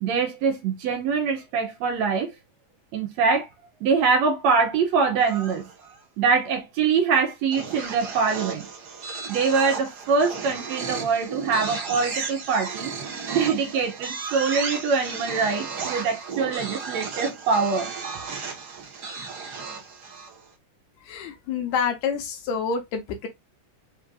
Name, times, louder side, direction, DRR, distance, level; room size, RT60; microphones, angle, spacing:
voice 1, 0.0-2.3 2.9-3.5 3.8-5.7 6.2-8.7 9.3-12.9 13.3-17.9, right 5 dB, 70° right, 2.1 m, -24 dB
sound 1, 5.2-6.0 7.5-20.5, right 5 dB, 50° right, 1.2 m, -34 dB
voice 2, 21.0-23.3, left 6 dB, 75° left, 2.1 m, -28 dB
5.3 x 3.2 x 2.4 m
omnidirectional pair, 3.5 m